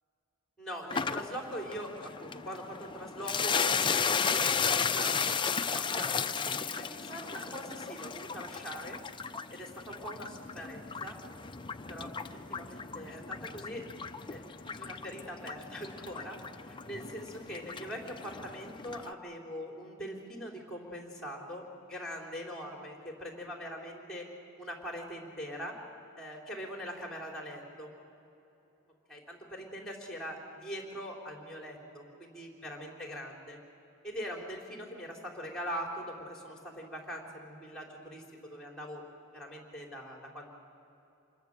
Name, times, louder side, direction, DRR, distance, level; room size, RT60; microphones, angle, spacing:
voice 1, 0.6-5.2 5.6-9.0 9.5-13.9 14.3-16.4 16.6-24.3 24.6-25.8 26.2-27.9 29.1-33.6 34.0-39.0 39.3-40.5, equal, 5° left, 0 dB, 3.7 m, -42 dB
sound 1, 0.9-19.1, left 6 dB, 20° left, 0.6 m, -35 dB
26.0 x 21.5 x 6.7 m, 2.8 s
head